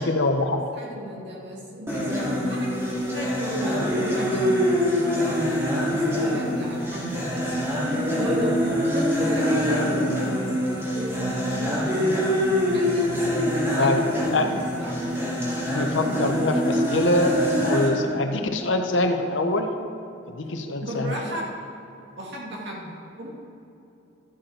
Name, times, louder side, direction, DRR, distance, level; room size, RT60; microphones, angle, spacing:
voice 1, 0.0-0.6 13.8-14.1 14.3-14.5 15.7-17.3 17.6-19.7 20.3-21.4, left 2 dB, 65° left, 5 dB, 0.8 m, -24 dB
voice 2, 0.7-7.6 8.2-8.6 8.9-12.2 12.7-15.2 17.6-18.1 20.8-21.5 22.2-23.3, equal, 60° right, -3 dB, 2.1 m, -35 dB
sound 1, 1.9-17.9, equal, 15° right, 2.2 m, -24 dB
12.5 x 7.8 x 4.4 m, 2.8 s
head